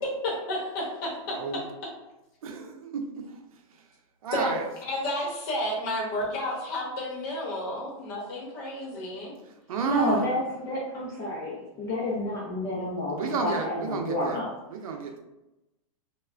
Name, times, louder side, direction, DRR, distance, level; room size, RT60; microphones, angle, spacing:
voice 1, 0.0-1.6 4.3-4.6 4.9-9.3, left 1 dB, 35° left, -3 dB, 0.8 m, -31 dB
voice 2, 2.4-3.3 4.2-4.6 9.7-10.2 13.1-14.4 14.7-15.2, right 5 dB, 80° right, 3 dB, 0.5 m, -30 dB
voice 3, 9.8-14.5, left 1 dB, 15° left, -6 dB, 0.3 m, -30 dB
3.2 x 2.0 x 2.4 m, 0.96 s
supercardioid pair, 165°, 18 cm